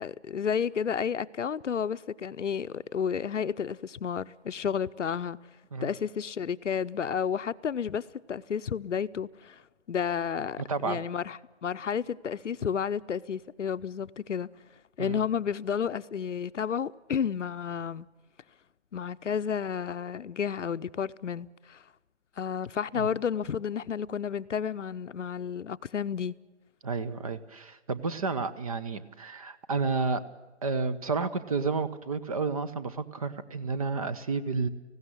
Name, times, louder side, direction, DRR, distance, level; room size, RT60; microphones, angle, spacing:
voice 1, 0.0-5.4 5.8-9.6 9.9-14.5 15.0-18.1 18.9-21.8 22.4-26.4, left 7 dB, 80° left, 0.8 m, -31 dB
voice 2, 10.7-11.0 15.0-15.2 22.9-23.1 26.8-30.2 30.6-34.7, right 4 dB, 30° right, 0.8 m, -31 dB
19.0 x 16.0 x 9.8 m
hypercardioid pair, 160°, 36 cm